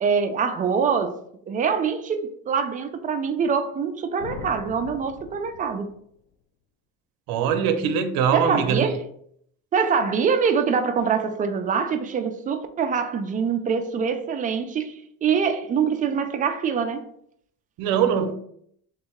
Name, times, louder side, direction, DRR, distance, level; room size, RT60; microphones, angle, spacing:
voice 1, 0.0-1.2 1.5-5.9 8.3-9.0 9.7-17.0, right 6 dB, 25° right, 0.3 m, -24 dB
sound 1, 4.2-6.2, left 7 dB, 85° left, 0.5 m, -41 dB
voice 2, 7.3-8.9 17.8-18.3, right 7 dB, 85° right, 0.6 m, -22 dB
3.7 x 2.7 x 4.3 m
cardioid pair, 155°, 34 cm